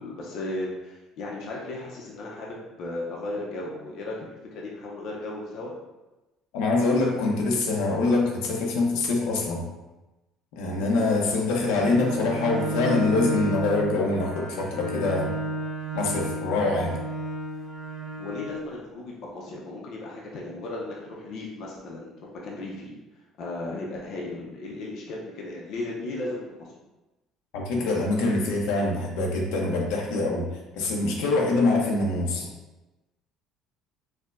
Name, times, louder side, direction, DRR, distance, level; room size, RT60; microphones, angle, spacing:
voice 1, 0.0-5.7 18.2-23.0 23.4-26.7 32.4-32.5, left 2 dB, 50° left, -2 dB, 0.5 m, -35 dB
voice 2, 6.5-9.7 10.6-15.4 15.9-17.0 27.5-32.5, left 2 dB, 90° left, -1 dB, 0.6 m, -24 dB
Bowed string instrument, 11.6-18.7, right 1 dB, 35° right, 1.0 m, -32 dB
4.4 x 2.1 x 2.4 m, 1.1 s
cardioid pair, 170°, 0 cm